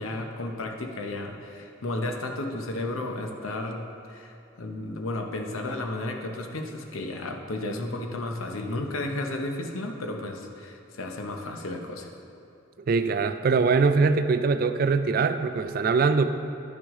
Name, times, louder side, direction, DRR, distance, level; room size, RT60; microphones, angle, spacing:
voice 1, 0.0-12.1, left 2 dB, 90° left, 3 dB, 0.8 m, -33 dB
voice 2, 12.9-16.3, right 4 dB, 45° right, 10 dB, 0.3 m, -22 dB
10.5 x 6.1 x 3.7 m, 2.6 s
head